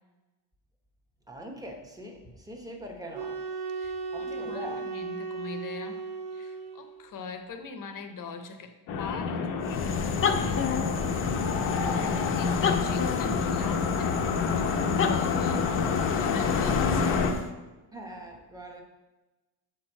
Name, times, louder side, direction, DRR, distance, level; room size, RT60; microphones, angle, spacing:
voice 1, 1.3-3.4 4.1-4.8 17.9-18.8, equal, 10° right, 1 dB, 0.9 m, -42 dB
sound 1, 3.1-7.0, right 4 dB, 55° right, 0.7 m, -36 dB
voice 2, 3.7-10.9 11.7-15.7 16.2-17.3, left 4 dB, 45° left, 7 dB, 0.8 m, -41 dB
sound 2, 8.9-17.3, left 5 dB, 85° left, 0.9 m, -28 dB
sound 3, 9.6-17.5, left 5 dB, 30° left, 0.4 m, -30 dB
6.9 x 4.6 x 4.4 m, 1.1 s
cardioid pair, 140°, 45 cm